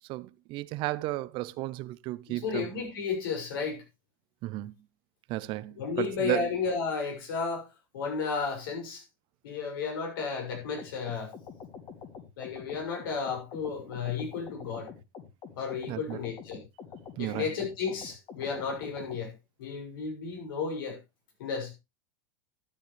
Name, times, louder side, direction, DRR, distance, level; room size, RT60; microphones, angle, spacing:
voice 1, 0.1-2.7 4.4-4.7 5.3-6.5 15.9-16.2 17.2-17.5, right 18 dB, 45° right, 0.6 m, -33 dB
voice 2, 2.3-3.8 5.8-7.7 7.9-9.0 9.4-11.3 12.4-14.9 15.6-16.6 17.2-19.3 19.6-21.0 21.4-21.7, left 5 dB, 80° left, 6.4 m, -33 dB
sound 1, 10.5-19.2, left 6 dB, 40° left, 2.6 m, -46 dB
12.0 x 9.1 x 3.3 m
supercardioid pair, 125°, 12 cm